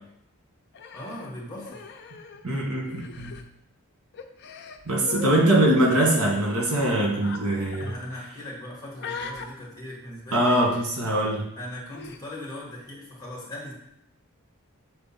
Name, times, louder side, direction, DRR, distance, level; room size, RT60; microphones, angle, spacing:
Human voice, 0.7-2.6 2.9-3.4 4.1-5.3 6.0-6.3 7.2-7.4 7.7-8.0 9.0-9.5 10.3-10.8 11.9-12.2, left 5 dB, 50° left, 0.5 m, -40 dB
voice 1, 0.9-1.9 7.8-10.8 11.5-13.7, left 1 dB, 15° left, -3 dB, 1.7 m, -39 dB
voice 2, 2.4-3.3 4.8-7.9 10.3-11.4, right 1 dB, 85° right, -1 dB, 1.7 m, -22 dB
6.8 x 3.7 x 4.2 m, 0.79 s
head